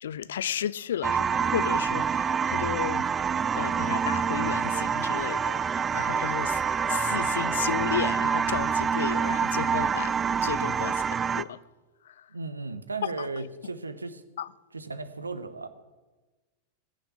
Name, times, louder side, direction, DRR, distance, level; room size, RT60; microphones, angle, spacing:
voice 1, 0.0-3.1 3.5-6.6 6.9-10.2 10.4-11.6 12.0-12.3 13.2-13.5 14.4-14.5, left 9 dB, 60° left, 0.5 m, -33 dB
sound 1, 1.0-11.4, right 6 dB, 20° right, 0.4 m, -26 dB
voice 2, 12.3-14.2 14.7-15.7, right 3 dB, 80° right, 1.0 m, -35 dB
20.5 x 7.0 x 8.5 m
figure-of-eight pair, 90°, 0 cm